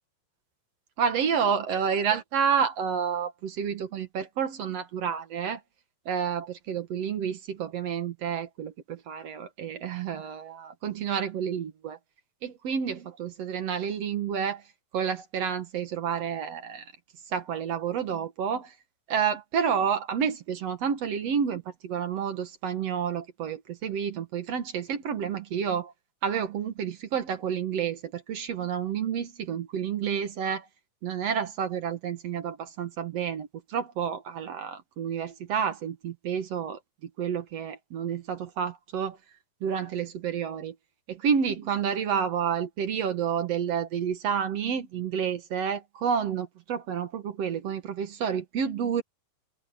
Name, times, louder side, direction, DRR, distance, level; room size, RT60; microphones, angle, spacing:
voice 1, 1.0-5.6 6.1-12.0 12.4-14.6 14.9-16.9 17.3-18.7 19.1-25.9 26.2-30.7 31.0-36.8 37.2-39.2 39.6-40.7 41.1-49.0, right 7 dB, 55° right, 2.0 m, -29 dB
omnidirectional pair, 4.3 m